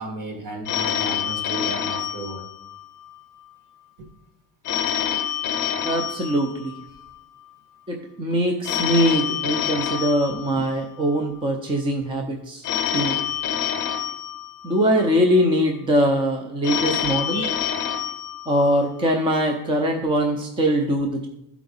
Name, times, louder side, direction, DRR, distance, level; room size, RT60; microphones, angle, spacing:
voice 1, 0.0-2.4 4.0-4.1 17.3-17.6, right 2 dB, 45° right, 3 dB, 1.7 m, -34 dB
Telephone, 0.6-3.1 4.6-7.1 8.6-11.1 12.6-15.1 16.6-19.1, left 9 dB, 45° left, 0.8 m, -27 dB
voice 2, 5.8-6.7 7.9-12.7 12.9-13.2 14.6-17.5 18.5-21.3, equal, 10° right, 2 dB, 0.5 m, -22 dB
12.5 x 4.7 x 3.9 m, 0.88 s
cardioid pair, 170°, 45 cm